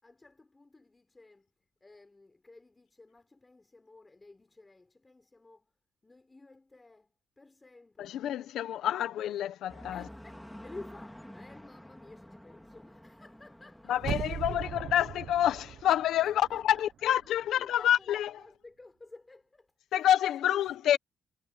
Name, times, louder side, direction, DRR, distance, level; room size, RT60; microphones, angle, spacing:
voice 1, 0.0-5.7 6.0-8.3 9.9-14.7 16.2-17.3 17.6-19.7 20.4-21.0, left 2 dB, 20° left, 6.6 m, -54 dB
voice 2, 8.0-10.0 13.9-18.3 19.9-21.0, left 11 dB, 80° left, 1.3 m, -28 dB
sound 1, 9.7-14.8, equal, 5° left, 4.4 m, -50 dB
sound 2, 14.0-16.9 17.2-17.3, right 9 dB, 60° right, 1.1 m, -39 dB
cardioid pair, 90°, 0 cm